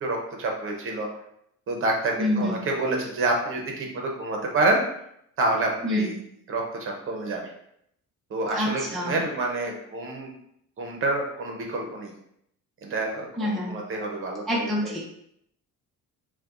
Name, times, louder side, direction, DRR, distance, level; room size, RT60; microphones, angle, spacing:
voice 1, 0.0-1.1 1.7-4.8 5.4-6.1 6.5-7.4 8.3-10.3 10.8-12.1 12.8-14.9, right 2 dB, 40° right, 1 dB, 0.8 m, -28 dB
voice 2, 2.2-2.6 5.8-6.1 8.5-9.2 13.4-13.7 14.5-15.1, left 1 dB, ahead, -5 dB, 0.5 m, -26 dB
5.6 x 2.2 x 2.5 m, 0.74 s
cardioid pair, 160°, 32 cm